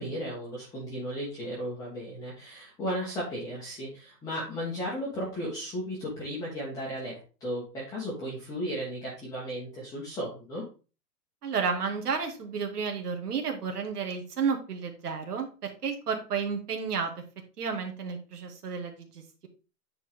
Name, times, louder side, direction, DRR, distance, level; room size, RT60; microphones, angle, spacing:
voice 1, 0.0-10.6, equal, 5° left, -7 dB, 1.4 m, -35 dB
voice 2, 11.4-17.1 17.6-19.5, right 6 dB, 65° right, 4 dB, 2.3 m, -32 dB
9.6 x 4.7 x 3.6 m, 0.33 s
hypercardioid pair, 160°, 49 cm